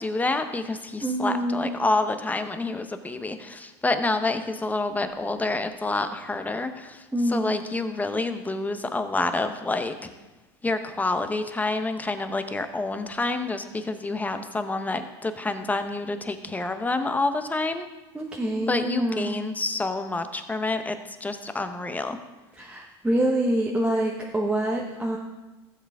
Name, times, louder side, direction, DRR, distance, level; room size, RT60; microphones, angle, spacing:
voice 1, 0.0-10.1 10.6-17.9 18.5-22.2, left 2 dB, 10° left, 9 dB, 0.8 m, -28 dB
voice 2, 1.0-1.7 7.1-7.6 18.1-19.4 22.6-25.2, right 1 dB, 10° right, -2 dB, 1.1 m, -26 dB
15.5 x 7.3 x 3.6 m, 1.1 s
supercardioid pair, 115°, 14 cm